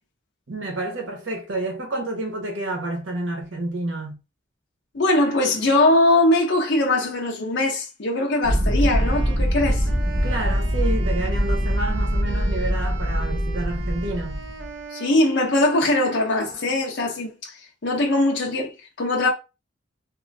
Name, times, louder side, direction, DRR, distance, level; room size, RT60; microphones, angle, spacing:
voice 1, 0.5-4.2 10.2-14.4, right 2 dB, 85° right, 1.1 m, -29 dB
voice 2, 4.9-9.9 14.9-19.3, left 2 dB, 65° left, 0.7 m, -21 dB
sound 1, 8.4-14.7, equal, 30° right, 0.6 m, -23 dB
Wind instrument woodwind instrument, 8.9-17.0, right 5 dB, 70° right, 0.6 m, -40 dB
3.1 x 2.7 x 2.6 m
head